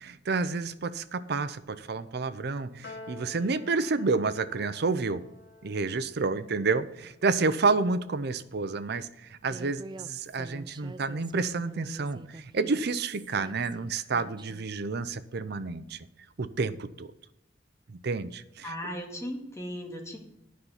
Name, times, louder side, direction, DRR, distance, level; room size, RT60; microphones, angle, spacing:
voice 1, 0.0-5.2 5.6-16.0 16.4-17.1 17.9-18.7, right 4 dB, 60° right, 13 dB, 0.6 m, -29 dB
Piano, 2.8-9.3, left 2 dB, 65° left, 1.2 m, -52 dB
Human voice, 9.5-14.7, right 2 dB, 25° right, 0.4 m, -46 dB
voice 2, 18.6-20.2, equal, 15° left, 0 dB, 1.9 m, -37 dB
9.5 x 5.6 x 8.0 m, 0.83 s
head